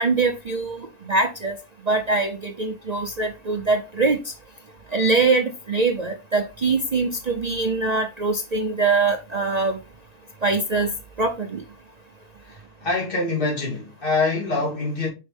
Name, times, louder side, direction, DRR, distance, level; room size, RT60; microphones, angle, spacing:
voice 1, 0.0-1.6 1.9-4.3 4.9-9.8 10.4-10.9 11.2-11.6, right 3 dB, 70° right, 0.3 m, -23 dB
voice 2, 12.5-15.1, left 3 dB, 35° left, 2.8 m, -25 dB
5.4 x 5.3 x 3.4 m
omnidirectional pair, 1.7 m